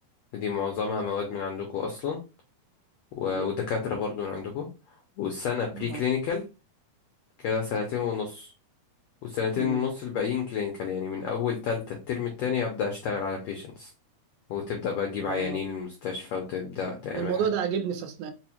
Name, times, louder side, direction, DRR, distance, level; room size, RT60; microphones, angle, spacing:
voice 1, 0.3-2.2 3.2-4.7 5.2-6.4 7.4-8.5 9.2-13.9 14.5-17.3, left 6 dB, 90° left, 1.4 m, -30 dB
voice 2, 9.6-9.9 15.2-15.6 17.1-18.3, right 7 dB, 85° right, 2.2 m, -31 dB
5.1 x 2.0 x 2.9 m
omnidirectional pair, 3.8 m